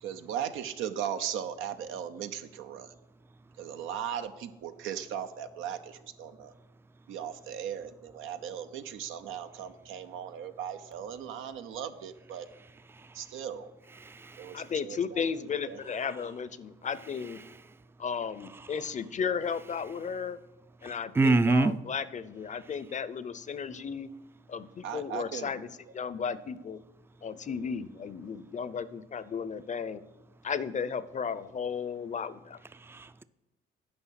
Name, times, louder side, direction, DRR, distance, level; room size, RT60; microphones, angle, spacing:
voice 1, 0.0-2.9 3.6-6.5 7.1-12.5 13.1-13.7 14.4-15.2 15.7-16.0 24.8-25.7, right 9 dB, 90° right, 0.7 m, -38 dB
voice 2, 14.0-14.5 20.8-21.8 32.8-33.2, right 3 dB, 10° right, 0.4 m, -26 dB
voice 3, 14.5-17.4 18.0-20.4 20.8-24.1 24.5-25.7 25.9-26.8 27.2-30.0 30.4-32.6, left 6 dB, 40° left, 0.6 m, -34 dB
9.7 x 5.4 x 5.8 m
cardioid pair, 90°, 20 cm